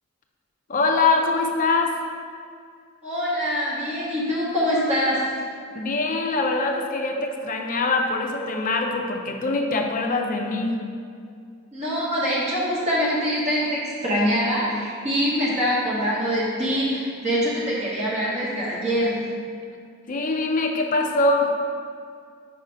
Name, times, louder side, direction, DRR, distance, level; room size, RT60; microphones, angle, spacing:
voice 1, 0.7-2.0 5.7-10.8 20.1-21.5, left 3 dB, 35° left, 3 dB, 0.5 m, -23 dB
voice 2, 3.0-5.2 11.7-19.2, equal, 30° right, -8 dB, 1.3 m, -24 dB
4.9 x 4.0 x 5.1 m, 2.2 s
head